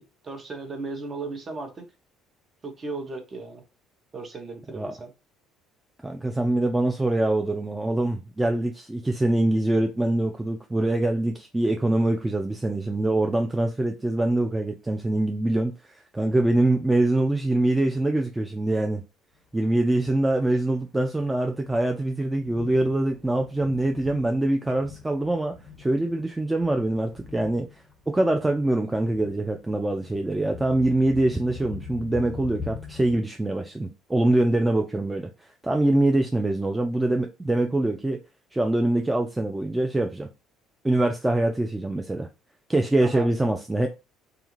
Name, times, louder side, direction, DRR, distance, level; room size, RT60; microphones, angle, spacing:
voice 1, 0.0-1.9 2.6-3.6 4.1-5.1 43.0-43.3, right 3 dB, 35° right, 0.8 m, -36 dB
voice 2, 6.0-19.0 19.5-27.7 28.1-38.2 38.5-40.3 40.8-42.3 42.7-43.9, right 1 dB, 15° right, 0.3 m, -24 dB
Thunder, 19.5-33.2, left 5 dB, 10° left, 1.3 m, -43 dB
2.4 x 2.3 x 3.0 m
figure-of-eight pair, 55°, 0 cm